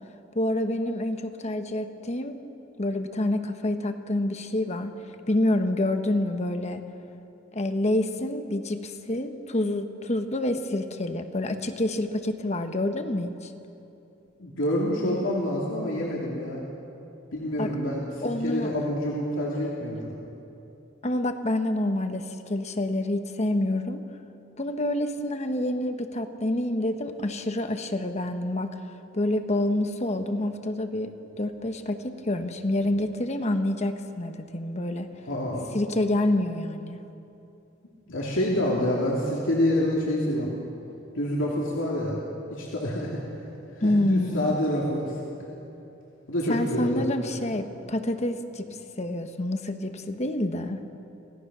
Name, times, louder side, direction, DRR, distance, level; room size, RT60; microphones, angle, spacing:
voice 1, 0.3-2.4 2.8-4.9 5.3-6.8 7.5-13.5 17.6-17.7 18.2-18.7 21.0-24.0 24.6-28.7 29.1-35.1 35.7-37.0 43.8-44.6 46.5-50.8, left 1 dB, 35° left, 7 dB, 1.1 m, -27 dB
voice 2, 14.4-16.6 17.3-20.1 35.2-35.7 38.1-40.5 41.1-42.2 42.5-43.2 43.8-45.2 46.3-47.0, left 1 dB, 80° left, -4 dB, 2.8 m, -27 dB
27.0 x 17.0 x 6.2 m, 2.8 s
head